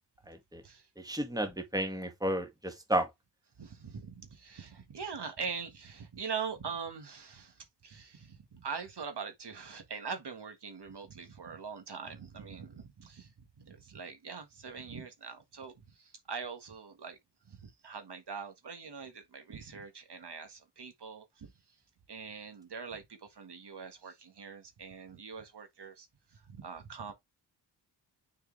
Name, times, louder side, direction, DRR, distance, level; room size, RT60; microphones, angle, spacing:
voice 1, 0.3-0.6 1.0-3.1, right 1 dB, 10° right, 1.8 m, -32 dB
voice 2, 3.6-17.2 17.5-21.5 22.1-26.1 26.3-27.1, right 5 dB, 60° right, 1.5 m, -43 dB
6.6 x 4.7 x 3.2 m
cardioid pair, 60°, 45 cm